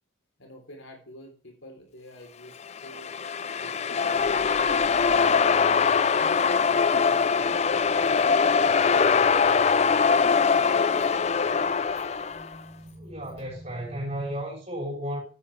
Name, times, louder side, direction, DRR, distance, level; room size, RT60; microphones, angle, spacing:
voice 1, 0.4-3.1 3.6-5.4 5.8-7.6 8.0-9.7 10.5-11.1, equal, 75° left, 3.4 m, -47 dB
sound 1, 2.7-12.5, left 5 dB, 35° left, 0.4 m, -22 dB
sound 2, 4.1-14.4, right 1 dB, 60° right, 4.2 m, -49 dB
voice 2, 12.9-15.2, equal, 35° right, 6.5 m, -33 dB
12.0 x 9.2 x 3.3 m
head